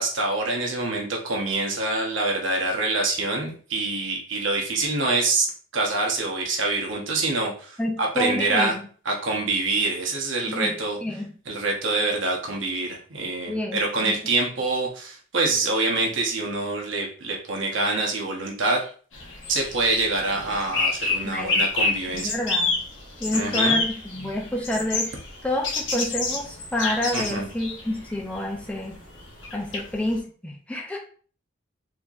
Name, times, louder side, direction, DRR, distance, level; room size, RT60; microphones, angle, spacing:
voice 1, 0.0-5.5 5.7-8.7 9.0-11.0 11.5-18.9 19.5-22.4 23.3-23.8 27.1-27.5, right 3 dB, 80° right, 0 dB, 1.0 m, -25 dB
voice 2, 7.8-8.8 10.5-10.7 11.0-11.3 13.5-14.1 21.2-21.6 22.1-22.7 23.2-25.1 25.4-29.0 29.5-31.0, left 1 dB, 5° left, -1 dB, 0.6 m, -28 dB
sound 1, 19.1-30.2, left 3 dB, 85° left, 1.2 m, -29 dB
4.4 x 2.8 x 2.4 m, 0.42 s
head